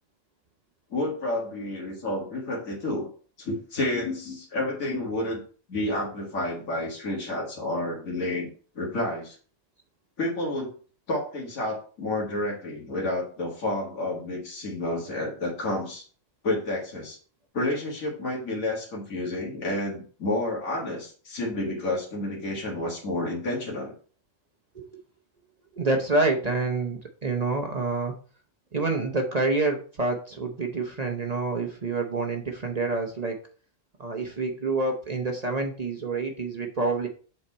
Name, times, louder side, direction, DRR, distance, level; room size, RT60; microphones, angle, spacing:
voice 1, 0.9-3.1 3.4-5.4 5.7-8.5 8.8-9.4 10.2-10.7 11.1-16.0 16.4-17.2 17.5-23.9, left 1 dB, 85° left, -2 dB, 2.2 m, -30 dB
voice 2, 25.7-28.1 28.7-33.4 34.0-37.1, right 3 dB, 35° right, 2 dB, 0.8 m, -27 dB
7.7 x 4.1 x 4.2 m, 0.41 s
omnidirectional pair, 1.4 m